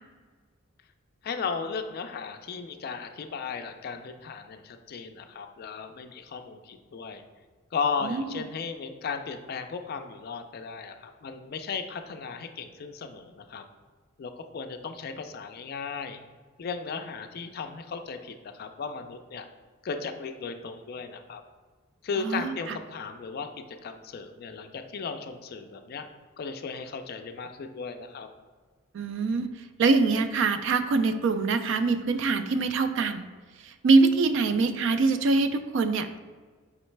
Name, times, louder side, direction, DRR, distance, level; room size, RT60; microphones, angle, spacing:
voice 1, 1.2-7.2 7.7-13.6 14.2-16.2 16.6-19.5 19.8-21.4 22.0-23.5 23.8-26.1 26.4-28.3, left 5 dB, 50° left, 7 dB, 0.3 m, -36 dB
voice 2, 8.0-8.4 22.2-22.8 28.9-29.5 29.8-33.3 33.6-36.2, right 3 dB, 65° right, 10 dB, 0.3 m, -24 dB
4.9 x 3.1 x 3.2 m, 1.5 s
head